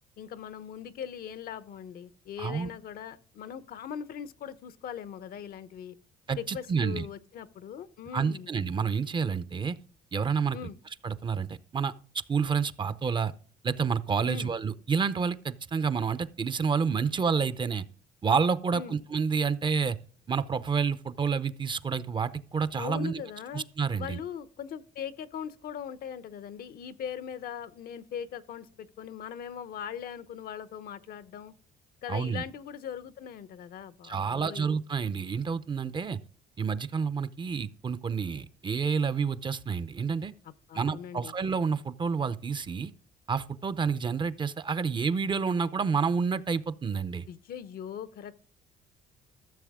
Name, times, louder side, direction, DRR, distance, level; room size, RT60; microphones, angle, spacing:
voice 1, 0.2-6.0 6.4-8.5 10.5-10.7 14.3-14.5 18.7-19.0 22.8-23.7 24.0-31.5 32.0-34.7 40.4-41.3 47.3-48.4, left 8 dB, 60° left, 0.8 m, -40 dB
voice 2, 2.4-2.7 6.3-7.0 8.1-9.8 10.1-10.6 11.0-13.3 13.6-17.8 18.2-20.0 20.3-23.2 23.5-24.2 32.1-32.4 34.0-36.2 36.6-40.3 40.7-42.9 43.3-47.3, right 5 dB, 30° right, 0.6 m, -29 dB
14.0 x 7.1 x 3.6 m
cardioid pair, 110°, 17 cm